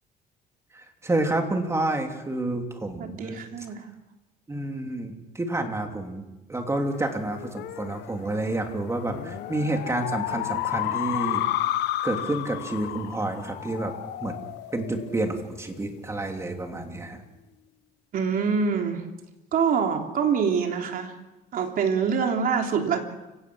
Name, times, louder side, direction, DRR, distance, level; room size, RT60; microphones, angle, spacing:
voice 1, 0.7-3.4 4.5-11.5 12.0-13.9 14.2-14.4 14.7-17.2, right 2 dB, 15° right, 4 dB, 3.1 m, -29 dB
voice 2, 3.0-3.9 18.1-19.0 19.5-21.1 21.5-23.1, right 6 dB, 55° right, 3 dB, 3.4 m, -25 dB
sound 1, 6.9-15.8, left 13 dB, 85° left, 1.0 m, -32 dB
29.5 x 17.0 x 6.3 m, 1.0 s
cardioid pair, 110°, 17 cm